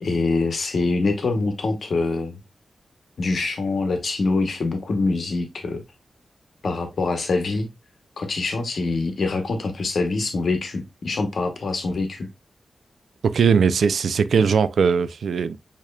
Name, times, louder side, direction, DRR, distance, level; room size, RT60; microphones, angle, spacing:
voice 1, 0.0-2.4 3.2-5.8 6.6-7.7 8.2-12.3, left 3 dB, 60° left, 0.9 m, -24 dB
voice 2, 13.2-15.6, right 6 dB, 85° right, 0.3 m, -19 dB
6.7 x 2.9 x 2.2 m
wide cardioid pair, 130°, 0 cm